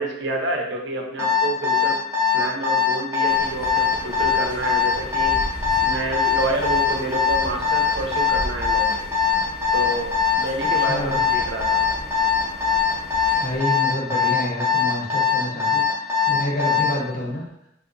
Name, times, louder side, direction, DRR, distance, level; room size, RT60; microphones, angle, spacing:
voice 1, 0.0-2.0 2.3-5.5 5.8-9.0 9.7-11.8, right 2 dB, 60° right, 1 dB, 0.5 m, -28 dB
Alarm, 1.2-17.0, left 7 dB, 15° right, 0.6 m, -21 dB
sound 1, 3.3-13.6, right 1 dB, 40° right, 0.8 m, -36 dB
voice 2, 10.6-11.3 13.4-17.5, left 1 dB, 40° left, -2 dB, 0.7 m, -28 dB
3.5 x 2.7 x 2.5 m, 0.83 s
head